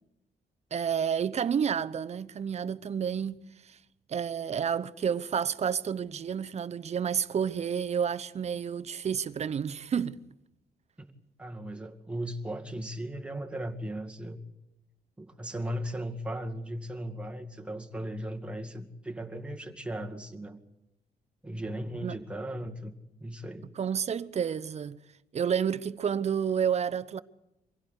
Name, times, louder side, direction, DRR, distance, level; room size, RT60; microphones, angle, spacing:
voice 1, 0.7-3.8 4.1-10.2 22.0-22.1 23.8-25.0 25.3-27.2, right 7 dB, 45° right, 0.9 m, -30 dB
voice 2, 11.4-14.4 15.2-20.6 21.4-22.9 23.2-23.7, right 1 dB, 5° right, 2.2 m, -37 dB
25.0 x 16.5 x 8.2 m
cardioid pair, 120°, 16 cm